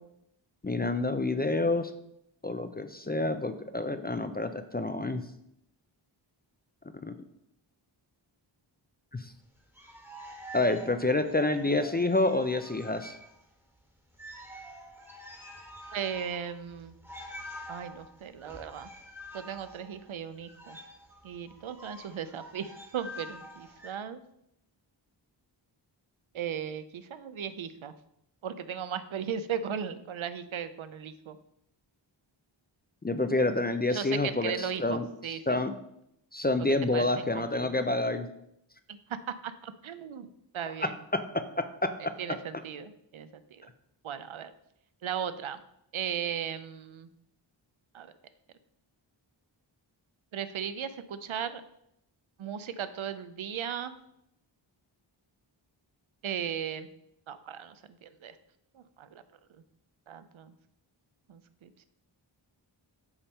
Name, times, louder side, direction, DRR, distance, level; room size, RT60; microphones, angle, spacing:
voice 1, 0.6-1.9 2.4-5.2 7.0-7.1 9.1-9.3 10.5-13.2 33.0-35.7 36.3-38.3 40.8-42.1, left 2 dB, 20° left, 9 dB, 0.4 m, -28 dB
sound 1, 9.6-13.5 13.8-13.9 14.1-23.9, equal, 5° right, 1.3 m, -47 dB
voice 2, 15.9-16.9 17.7-18.9 19.3-20.8 21.2-24.2 26.3-27.9 28.4-31.4 33.9-35.4 36.9-37.7 38.9-40.3 40.5-41.0 42.2-43.7 44.0-44.5 45.0-45.6 45.9-47.1 47.9-48.1 50.3-51.6 52.4-53.9 56.2-56.9 57.3-58.4 58.7-59.2 60.1-60.5 61.3-61.7, right 8 dB, 75° right, 12 dB, 0.6 m, -37 dB
7.1 x 3.5 x 5.4 m, 0.78 s
wide cardioid pair, 65°, 48 cm